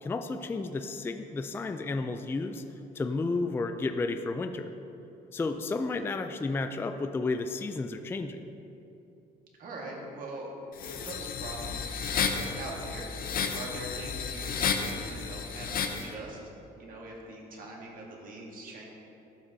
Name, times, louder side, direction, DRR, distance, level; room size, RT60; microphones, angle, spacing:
voice 1, 0.0-2.6 3.0-4.7 5.3-8.4, left 3 dB, 15° left, 7 dB, 0.3 m, -32 dB
voice 2, 9.6-10.5 10.9-13.1 13.5-16.4 16.7-18.9, right 2 dB, 55° right, -2 dB, 1.7 m, -42 dB
sound 1, 10.8-16.1, left 6 dB, 60° left, 0.7 m, -32 dB
12.5 x 5.9 x 2.7 m, 2.8 s
cardioid pair, 110°, 17 cm